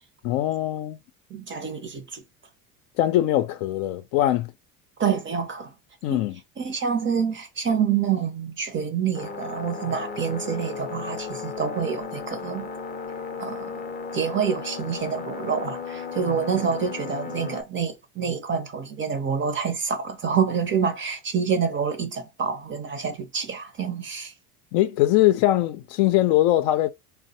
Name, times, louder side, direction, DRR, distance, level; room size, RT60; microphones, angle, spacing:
voice 1, 0.2-1.0 3.0-4.5 6.0-6.4 24.7-26.9, left 14 dB, 65° left, 0.5 m, -21 dB
voice 2, 1.3-2.2 5.0-5.7 6.1-6.3 6.6-12.7 13.4-13.7 14.1-24.3, right 6 dB, 25° right, 0.5 m, -27 dB
sound 1, 9.1-17.6, left 5 dB, 20° left, 0.5 m, -35 dB
3.2 x 2.1 x 2.7 m
hypercardioid pair, 75°, 47 cm